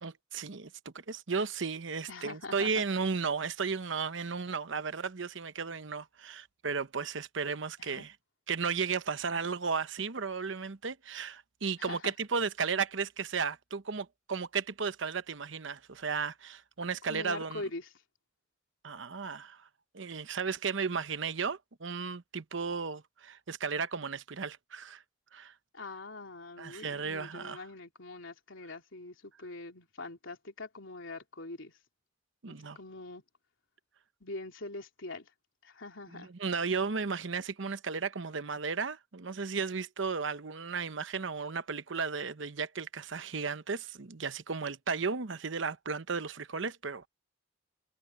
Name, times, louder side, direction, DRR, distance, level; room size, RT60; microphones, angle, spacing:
voice 1, 0.0-8.1 8.5-17.6 18.8-19.7 19.9-25.0 25.3-25.5 26.6-27.6 32.4-32.8 36.1-47.1, right 5 dB, 75° right, 0.9 m, -34 dB
voice 2, 2.1-2.8 7.8-8.1 11.8-12.1 17.1-17.9 25.7-31.7 32.5-33.2 34.2-35.3 35.6-36.3, left 2 dB, 80° left, 3.3 m, -43 dB
head